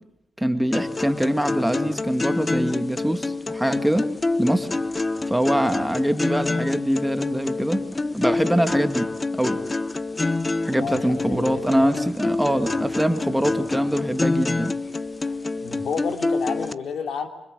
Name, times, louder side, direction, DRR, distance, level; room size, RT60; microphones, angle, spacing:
voice 1, 0.4-4.1 4.4-4.7 5.3-7.8 8.1-9.6 10.7-14.7, equal, 5° right, 8 dB, 1.9 m, -23 dB
sound 1, 0.7-16.7, left 3 dB, 25° left, 1.0 m, -27 dB
voice 2, 10.8-11.9 14.8-15.0 15.2-17.3, left 6 dB, 65° left, 6 dB, 3.2 m, -31 dB
26.0 x 25.0 x 8.1 m, 0.82 s
cardioid pair, 85°, 0 cm